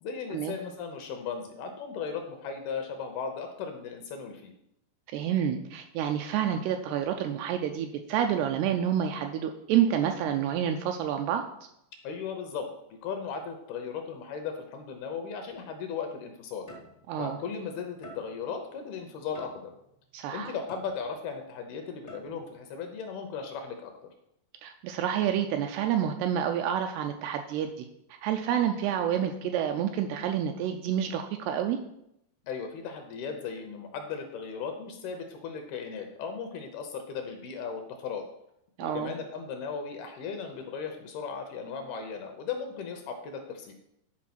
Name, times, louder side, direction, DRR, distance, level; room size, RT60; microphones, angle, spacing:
voice 1, 0.0-4.5 12.0-12.7 13.0-16.7 17.2-19.7 20.3-23.9 32.5-38.2 38.8-43.7, left 6 dB, 75° left, 4 dB, 2.5 m, -37 dB
voice 2, 5.1-11.4 17.1-17.4 20.1-20.5 24.6-27.9 28.2-31.8 38.8-39.1, right 9 dB, 85° right, 5 dB, 2.4 m, -28 dB
sound 1, 15.5-15.7 16.7-17.3 18.0-18.6 19.3-20.0 20.7-21.4 22.1-22.6, left 1 dB, 45° left, 0.5 m, -48 dB
10.5 x 4.5 x 6.0 m, 0.79 s
omnidirectional pair, 5.1 m